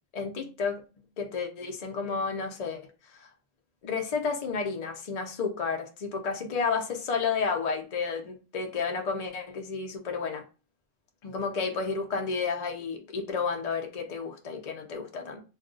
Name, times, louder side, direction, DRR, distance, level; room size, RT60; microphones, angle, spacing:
voice 1, 0.1-0.8 1.2-3.3 3.8-10.4 11.2-15.4, left 5 dB, 50° left, 0.4 m, -31 dB
2.4 x 2.3 x 3.7 m
omnidirectional pair, 1.3 m